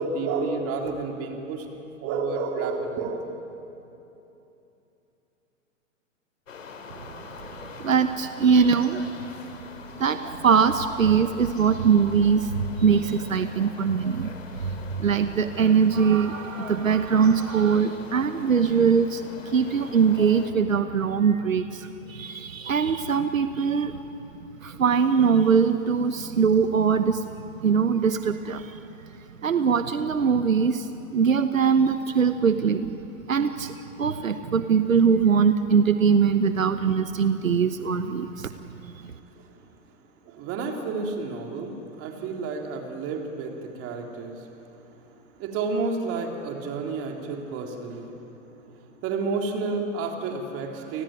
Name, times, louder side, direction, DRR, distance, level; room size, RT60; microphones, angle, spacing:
voice 1, 0.0-1.7 2.0-3.3 39.4-39.5 40.3-44.6 45.4-48.2 48.5-48.6 49.0-51.0, right 4 dB, 35° right, 2 dB, 3.8 m, -30 dB
sound 1, 6.5-20.5, left 5 dB, 75° left, 3.1 m, -44 dB
voice 2, 7.8-9.0 10.0-24.0 24.6-28.8 29.4-33.0 33.3-38.5 38.8-38.9, right 6 dB, 90° right, 10 dB, 1.1 m, -22 dB
29.5 x 19.0 x 9.1 m, 2.9 s
hypercardioid pair, 115°, 39 cm